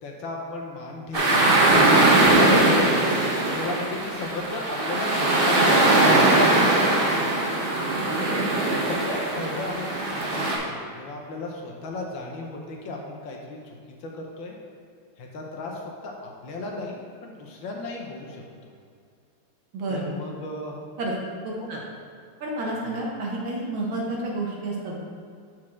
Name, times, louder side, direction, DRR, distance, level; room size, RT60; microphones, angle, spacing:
voice 1, 0.0-1.7 2.4-7.5 8.7-14.6 15.2-18.7 19.9-20.8 21.6-21.8 22.9-23.0, left 2 dB, 70° left, 0 dB, 1.5 m, -36 dB
sound 1, 1.1-10.6, right 2 dB, 40° right, 0.8 m, -20 dB
voice 2, 19.7-20.1 21.0-21.1 21.4-21.8 22.4-25.0, right 2 dB, 65° right, -3 dB, 2.0 m, -30 dB
6.0 x 4.5 x 6.2 m, 2.3 s
omnidirectional pair, 2.4 m